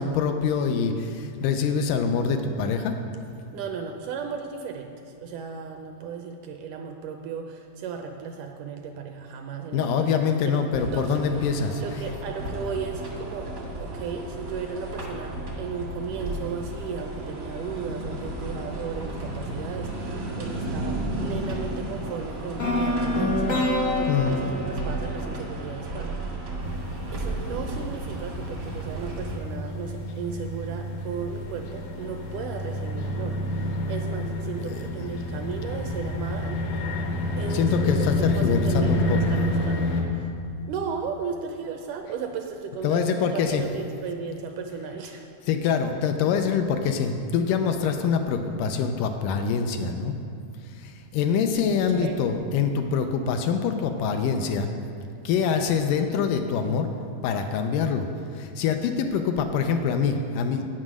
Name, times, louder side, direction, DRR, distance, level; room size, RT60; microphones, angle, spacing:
voice 1, 0.0-3.0 9.7-11.8 24.1-24.4 34.7-34.8 37.5-39.2 42.8-43.6 45.5-50.2 50.7-54.7 55.2-56.9 57.2-58.1 58.3-60.6, left 6 dB, 80° left, 6 dB, 2.1 m, -25 dB
voice 2, 3.5-11.2 11.8-13.5 13.8-23.6 24.0-26.2 27.1-36.6 37.4-40.3 40.7-45.2 51.9-52.2, right 6 dB, 80° right, 4 dB, 1.9 m, -35 dB
sound 1, 10.7-29.4, right 2 dB, 60° right, 0.9 m, -34 dB
sound 2, 22.6-26.6, left 1 dB, 40° left, 1.0 m, -27 dB
sound 3, 26.6-40.0, left 1 dB, 65° left, 1.9 m, -29 dB
8.7 x 7.5 x 6.1 m, 2.4 s
omnidirectional pair, 4.0 m